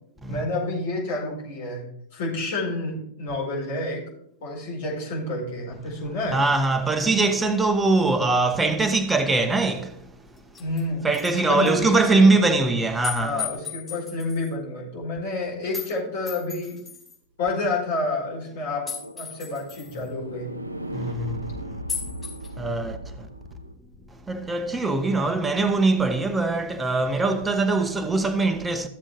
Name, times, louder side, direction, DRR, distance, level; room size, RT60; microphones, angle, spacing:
voice 1, 0.3-1.8 2.1-4.0 4.4-6.4 10.6-11.1 11.3-12.3 13.2-16.8 17.4-18.9 19.1-20.5, left 2 dB, 55° left, 4.7 m, -29 dB
voice 2, 6.3-10.0 11.0-13.5 19.9-20.1 20.9-21.6 22.6-23.3 24.3-28.9, right 3 dB, 10° right, 1.1 m, -22 dB
sound 1, 9.7-9.8 10.4-10.8 11.1-11.3 11.7-11.8 13.0-14.5 15.7-15.9 16.3-17.2 18.9-20.0 21.9-22.5, left 7 dB, 15° left, 4.3 m, -35 dB
sound 2, 18.2-23.7, right 1 dB, 80° right, 0.6 m, -37 dB
13.5 x 7.4 x 3.4 m
figure-of-eight pair, 90°, 0 cm